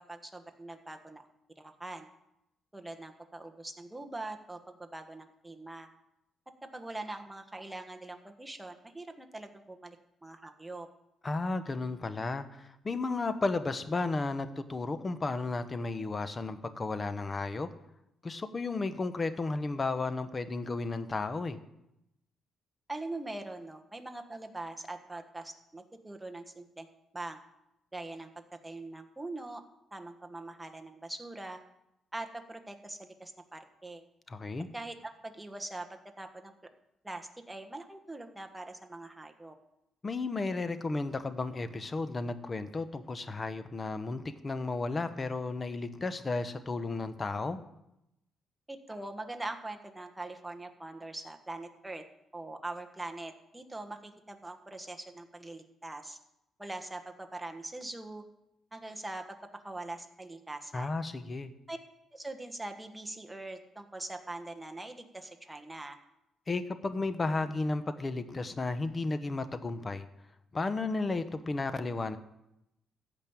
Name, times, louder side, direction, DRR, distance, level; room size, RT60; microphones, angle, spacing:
voice 1, 0.1-1.3 1.6-2.1 2.7-5.9 6.7-10.0 10.2-10.9 22.9-26.9 27.1-27.4 27.9-28.3 28.6-29.6 29.9-31.6 32.1-34.0 34.7-36.5 37.0-39.5 48.7-52.0 52.3-56.2 56.6-58.2 58.7-59.2 59.6-60.9 61.7-61.8 62.1-66.0, right 2 dB, 10° right, 5 dB, 1.4 m, -42 dB
voice 2, 11.2-17.7 18.2-21.6 34.3-34.7 40.0-47.6 60.7-61.5 66.5-70.1 70.5-72.2, left 3 dB, 30° left, 11 dB, 1.0 m, -33 dB
14.5 x 5.3 x 8.8 m, 0.86 s
cardioid pair, 90°, 0 cm